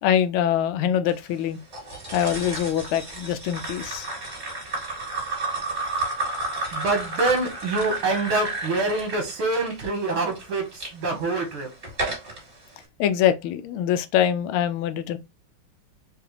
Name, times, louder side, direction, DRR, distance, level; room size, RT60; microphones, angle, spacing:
voice 1, 0.0-1.6 2.1-4.1 13.0-15.2, left 10 dB, 85° left, 1.4 m, -24 dB
sound 1, 1.7-10.9 11.5-12.4, right 2 dB, 30° right, 2.4 m, -32 dB
voice 2, 6.7-11.7, right 3 dB, 80° right, 2.2 m, -25 dB
4.7 x 2.7 x 3.3 m
omnidirectional pair, 2.3 m